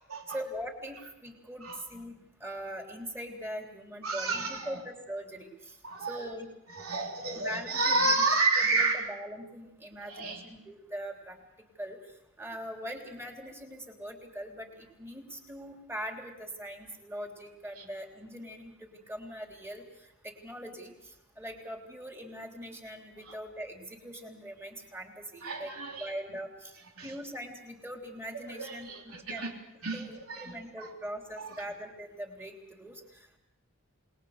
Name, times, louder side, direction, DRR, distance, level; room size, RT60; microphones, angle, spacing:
voice 1, 0.3-5.7 6.1-6.5 7.3-8.2 8.6-11.4 11.8-12.0 12.4-19.8 20.2-25.7 26.0-26.7 27.0-29.7 29.9-33.4, equal, 10° right, 2 dB, 3.4 m, -42 dB
voice 2, 4.0-4.8 5.8-6.3 6.7-9.1 10.1-10.4 17.8-17.9 23.2-23.3 25.4-26.1 27.0-27.1 28.4-29.5 29.8-30.9 31.4-31.5, right 3 dB, 80° right, 1 dB, 3.5 m, -30 dB
28.0 x 20.5 x 6.7 m, 0.90 s
head